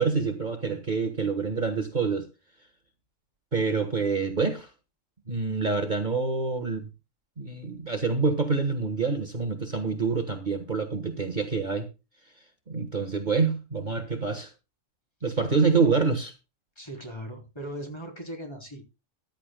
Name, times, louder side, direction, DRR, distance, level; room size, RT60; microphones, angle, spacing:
voice 1, 0.0-2.2 3.5-4.7 5.3-6.9 7.4-11.9 12.7-14.5 15.2-16.3, right 4 dB, 35° right, 1.5 m, -26 dB
voice 2, 16.8-18.8, equal, 20° left, 3.7 m, -38 dB
14.0 x 12.0 x 2.2 m
omnidirectional pair, 1.3 m